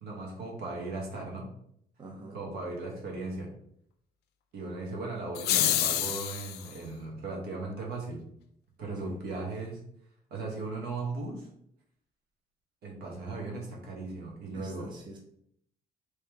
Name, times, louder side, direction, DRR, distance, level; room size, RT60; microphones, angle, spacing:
voice 1, 0.0-1.5 2.3-3.5 4.5-8.2 8.8-9.8 10.3-11.5 12.8-14.9, right 3 dB, 70° right, -1 dB, 1.2 m, -37 dB
voice 2, 2.0-2.4 9.0-9.2 14.5-15.2, right 2 dB, 25° right, 1 dB, 0.6 m, -45 dB
sound 1, 5.3-6.7, left 11 dB, 75° left, 0.4 m, -27 dB
3.1 x 3.0 x 3.4 m, 0.71 s
cardioid pair, 110°, 17 cm